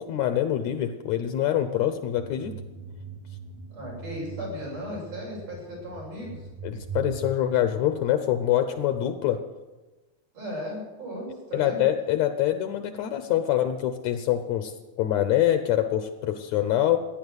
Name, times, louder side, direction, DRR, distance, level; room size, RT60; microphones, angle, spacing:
voice 1, 0.0-2.6 6.6-9.4 11.5-14.7 15.0-17.0, left 11 dB, 70° left, 9 dB, 1.9 m, -25 dB
sound 1, 2.2-7.2, right 5 dB, 65° right, 2.5 m, -40 dB
voice 2, 3.7-6.4 10.3-11.8, equal, 85° right, -3 dB, 8.5 m, -36 dB
16.0 x 10.5 x 8.1 m, 1.2 s
omnidirectional pair, 3.6 m